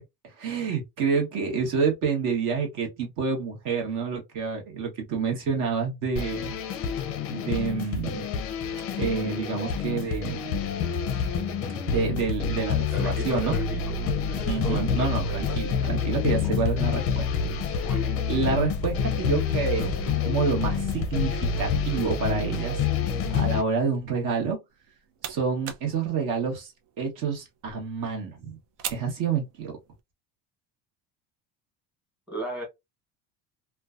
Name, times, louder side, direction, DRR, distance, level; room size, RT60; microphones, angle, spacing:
voice 1, 0.4-6.5 7.3-8.3 9.0-10.6 11.9-13.5 14.5-17.3 17.7-17.9 18.3-22.8 23.3-24.6 25.2-26.7 27.0-28.6 28.9-29.7, right 5 dB, 55° right, 1.0 m, -28 dB
sound 1, 6.2-23.6, left 6 dB, 40° left, 0.4 m, -28 dB
voice 2, 12.9-14.0 14.3-15.6 16.4-16.8 17.8-18.1 32.3-32.6, equal, 5° right, 1.1 m, -36 dB
Car, 13.2-22.1, right 1 dB, 30° right, 0.8 m, -42 dB
sound 2, 24.7-30.0, right 9 dB, 80° right, 0.6 m, -43 dB
2.5 x 2.2 x 2.3 m
cardioid pair, 160°, 36 cm